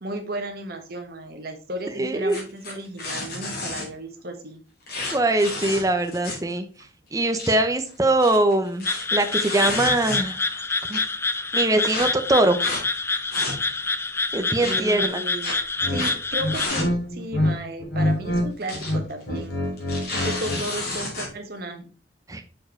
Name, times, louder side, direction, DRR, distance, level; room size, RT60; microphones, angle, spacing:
voice 1, 0.0-4.6 14.6-15.5 15.9-19.6 20.1-21.9, right 1 dB, 60° right, 5 dB, 1.4 m, -34 dB
voice 2, 2.0-2.4 5.1-6.7 7.1-10.6 10.9-11.0 11.5-12.6 14.3-15.2 22.3-22.4, right 2 dB, 20° right, 7 dB, 0.8 m, -22 dB
sound 1, 2.3-3.9 4.9-6.5 6.8-6.9 7.2-7.5 8.1-10.5 10.9-11.0 11.8-12.1 12.6-12.8 13.2-13.9 14.6-14.7 15.4-15.5 15.9-16.2 16.5-16.9 17.2-17.3 18.4-18.9 19.2-19.4 19.8-21.3, left 2 dB, 60° left, 3.0 m, -31 dB
sound 2, 8.9-16.7, left 3 dB, 15° left, 0.4 m, -27 dB
sound 3, 15.8-16.0 16.4-17.5 17.8-18.5 18.7-20.6, left 1 dB, 75° left, 3.1 m, -25 dB
6.4 x 4.7 x 4.5 m, 0.37 s
head